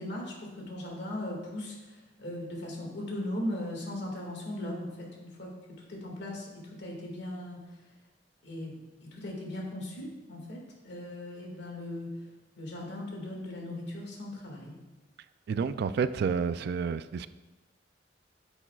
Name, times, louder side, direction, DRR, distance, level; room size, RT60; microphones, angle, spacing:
voice 1, 0.0-5.5 5.9-7.8 8.4-12.1 12.6-14.8, left 1 dB, 65° left, -1 dB, 1.9 m, -38 dB
voice 2, 15.5-17.3, right 6 dB, 60° right, 14 dB, 0.3 m, -29 dB
9.7 x 6.9 x 2.3 m, 1.1 s
head